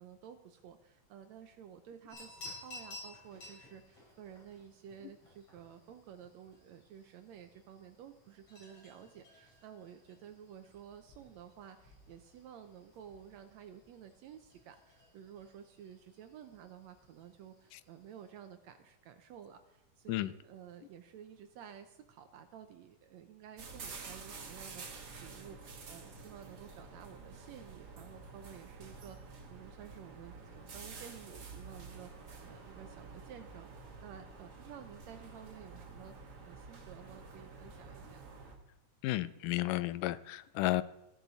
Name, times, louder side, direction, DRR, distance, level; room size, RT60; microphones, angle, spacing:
voice 1, 0.0-36.2 36.5-38.2, right 9 dB, 75° right, 8 dB, 1.7 m, -53 dB
sound 1, 2.1-18.3, left 2 dB, 45° left, 6.5 m, -56 dB
sound 2, 23.6-38.6, right 4 dB, 55° right, 1.2 m, -50 dB
sound 3, 31.6-38.5, right 3 dB, 30° right, 2.8 m, -63 dB
voice 2, 39.0-40.8, left 17 dB, 85° left, 16 dB, 2.1 m, -33 dB
14.5 x 10.5 x 4.0 m, 0.88 s
omnidirectional pair, 3.7 m